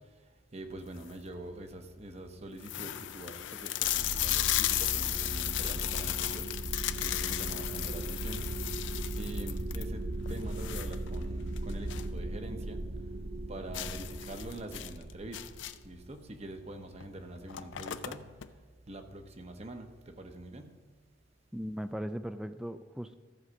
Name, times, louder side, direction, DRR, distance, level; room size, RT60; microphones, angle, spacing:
voice 1, 0.0-13.2 13.5-15.6 15.8-20.8, right 1 dB, 35° right, 6 dB, 0.8 m, -45 dB
sound 1, 0.8-1.3 1.9-2.0 2.2-2.3 2.6-12.2 12.5-12.6 13.0-13.1 13.7-16.0 16.9-17.1 17.3-18.5, left 14 dB, 70° left, 0.4 m, -35 dB
sound 2, 3.8-16.1, right 2 dB, 60° right, 0.8 m, -38 dB
voice 2, 21.5-23.1, equal, 5° right, 11 dB, 0.3 m, -38 dB
14.0 x 4.8 x 6.2 m, 1.3 s
head